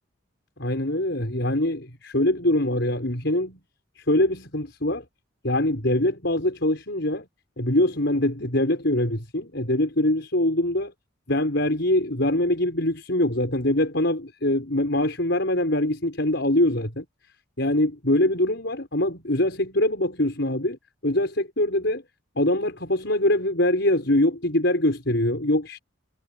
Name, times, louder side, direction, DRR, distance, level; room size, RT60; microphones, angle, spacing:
voice 1, 0.6-3.6 4.0-5.0 5.4-7.3 7.6-10.9 11.3-17.0 17.6-22.0 22.4-25.8, left 1 dB, 55° left, 6.3 m, -23 dB
head